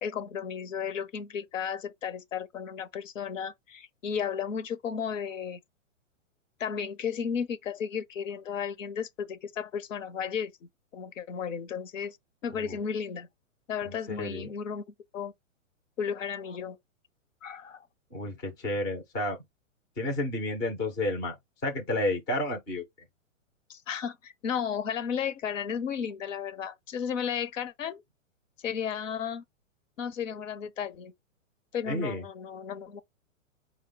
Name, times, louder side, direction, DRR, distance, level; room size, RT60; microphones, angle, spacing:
voice 1, 0.0-5.6 6.6-12.2 12.4-13.3 13.7-14.8 15.1-15.3 16.0-16.8 17.4-17.9 23.7-28.0 28.6-29.4 30.0-31.1 31.7-33.0, left 7 dB, 75° left, 0.7 m, -34 dB
voice 2, 13.8-14.5 18.1-19.4 20.0-21.4 21.6-22.8 31.9-32.2, left 1 dB, 10° left, 0.3 m, -31 dB
4.8 x 2.1 x 3.8 m
hypercardioid pair, 125°, 39 cm